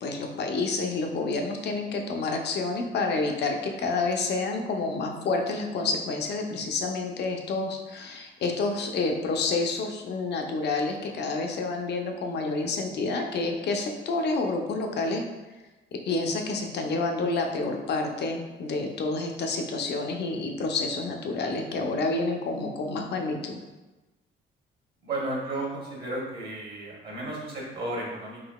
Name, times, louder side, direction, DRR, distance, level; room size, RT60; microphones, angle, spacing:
voice 1, 0.0-15.2 15.9-23.6, left 3 dB, 60° left, 3 dB, 0.5 m, -29 dB
voice 2, 25.0-28.4, right 2 dB, 55° right, -4 dB, 0.9 m, -33 dB
3.8 x 2.8 x 2.2 m, 1.1 s
cardioid pair, 90°, 20 cm